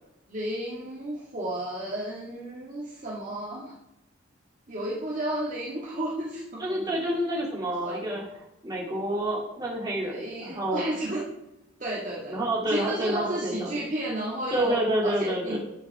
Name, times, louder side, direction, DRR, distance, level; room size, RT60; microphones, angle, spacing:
voice 1, 0.3-3.7 4.7-7.0 7.8-8.1 9.9-11.2 11.8-12.4 12.7-15.6, right 1 dB, 40° right, -5 dB, 2.0 m, -33 dB
voice 2, 6.6-8.3 8.6-10.8 12.3-13.7 14.5-15.6, right 1 dB, 20° right, -4 dB, 2.7 m, -28 dB
11.5 x 8.3 x 3.6 m, 0.89 s
head